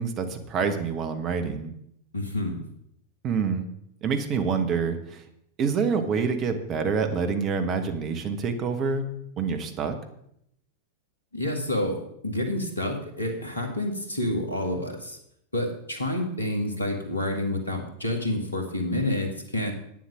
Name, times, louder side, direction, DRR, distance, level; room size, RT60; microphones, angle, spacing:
voice 1, 0.0-1.7 3.2-3.7 4.0-5.2 5.6-9.1 9.4-10.0, right 5 dB, 35° right, 7 dB, 1.3 m, -27 dB
voice 2, 2.1-2.6 11.3-15.2 15.5-19.7, left 1 dB, 80° left, 4 dB, 2.0 m, -29 dB
9.3 x 7.5 x 7.3 m, 0.75 s
figure-of-eight pair, 90°, 0 cm